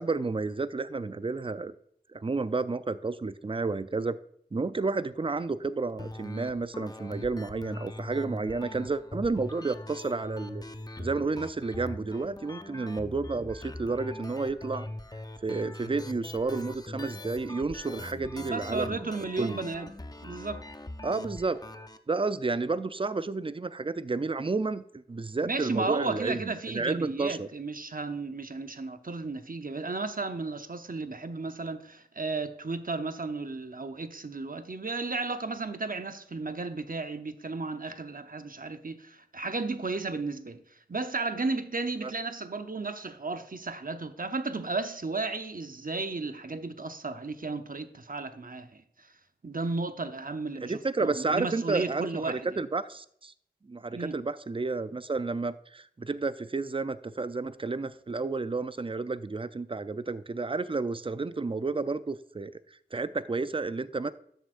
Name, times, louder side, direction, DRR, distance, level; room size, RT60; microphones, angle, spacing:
voice 1, 0.0-1.7 2.1-4.2 4.5-10.6 11.0-14.9 15.4-19.0 19.4-19.6 21.0-21.6 22.1-27.5 42.0-42.1 50.6-53.3 53.7-62.5 62.9-64.1, right 3 dB, 30° right, 0.4 m, -31 dB
sound 1, 6.0-22.0, left 1 dB, 20° left, 0.6 m, -42 dB
voice 2, 18.3-19.9 20.2-20.6 25.4-40.6 40.9-49.1 49.4-52.5 53.9-54.2, right 3 dB, 55° right, 0.7 m, -34 dB
12.5 x 7.9 x 2.5 m
wide cardioid pair, 50°, 17 cm